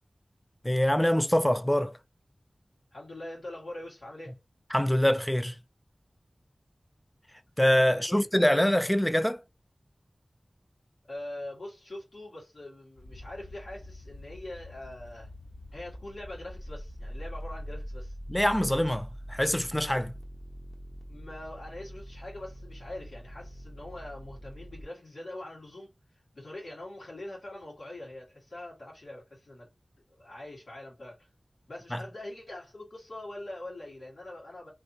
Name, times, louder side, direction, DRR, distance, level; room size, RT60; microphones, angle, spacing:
voice 1, 0.6-1.9 4.7-5.6 7.6-9.4 18.3-20.1 31.9-32.0, equal, 10° left, 0.3 m, -24 dB
voice 2, 2.9-4.4 7.9-8.3 11.1-15.3 15.7-18.1 21.1-25.9 26.3-29.7 30.1-31.3 31.7-34.7, left 1 dB, 85° left, 1.9 m, -43 dB
sound 1, 13.0-24.8, equal, 40° left, 0.9 m, -44 dB
3.1 x 2.9 x 2.7 m
wide cardioid pair, 45°, 0 cm